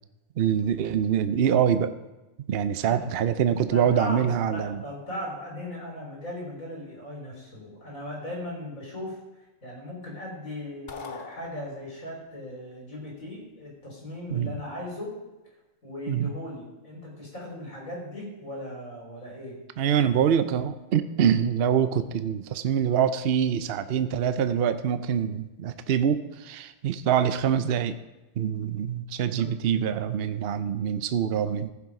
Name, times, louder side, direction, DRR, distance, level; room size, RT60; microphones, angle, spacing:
voice 1, 0.4-1.9 2.5-4.8 14.3-14.5 16.1-16.3 19.8-28.0 28.4-31.7, right 8 dB, 55° right, 11 dB, 0.8 m, -25 dB
voice 2, 3.7-15.1 15.8-19.6 29.4-29.5, left 1 dB, 80° left, -3 dB, 4.7 m, -38 dB
sound 1, 10.9-12.2, left 4 dB, 40° left, 1.0 m, -42 dB
15.0 x 7.3 x 4.9 m, 1.0 s
omnidirectional pair, 1.4 m